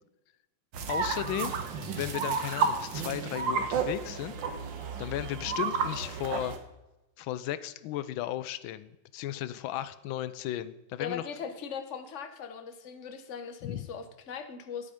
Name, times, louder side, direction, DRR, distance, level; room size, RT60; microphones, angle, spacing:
sound 1, 0.7-6.6, right 5 dB, 75° right, 1.8 m, -32 dB
voice 1, 0.9-1.6 2.0-4.4 5.0-6.5 7.2-11.2 13.6-13.9, left 13 dB, 90° left, 15 dB, 1.4 m, -35 dB
voice 2, 11.0-14.9, left 6 dB, 45° left, 7 dB, 1.3 m, -39 dB
11.5 x 8.7 x 5.1 m, 0.97 s
omnidirectional pair, 2.1 m